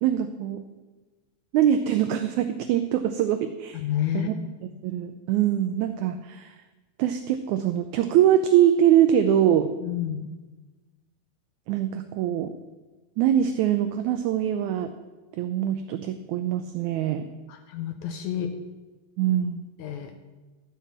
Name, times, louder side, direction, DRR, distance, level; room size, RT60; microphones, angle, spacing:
voice 1, 0.0-0.6 1.5-3.8 4.1-4.3 4.8-6.5 7.0-9.7 11.7-12.5 13.2-14.9 15.3-17.3 19.2-19.7, right 10 dB, 90° right, 9 dB, 1.6 m, -23 dB
voice 2, 3.8-4.3 9.8-10.3 17.5-18.5 19.8-20.1, left 11 dB, 75° left, 6 dB, 1.8 m, -29 dB
12.0 x 5.6 x 7.3 m, 1.2 s
omnidirectional pair, 3.9 m